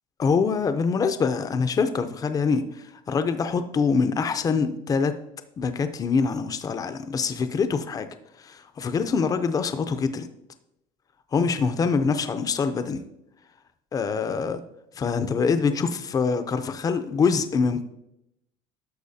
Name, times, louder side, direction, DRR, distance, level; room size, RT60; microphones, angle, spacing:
voice 1, 0.2-2.6 3.1-5.1 5.6-8.1 8.4-10.3 11.3-13.0 13.9-14.6 15.0-17.8, left 5 dB, 25° left, 10 dB, 0.6 m, -24 dB
11.5 x 6.4 x 2.7 m, 0.85 s
supercardioid pair, 115°, 13 cm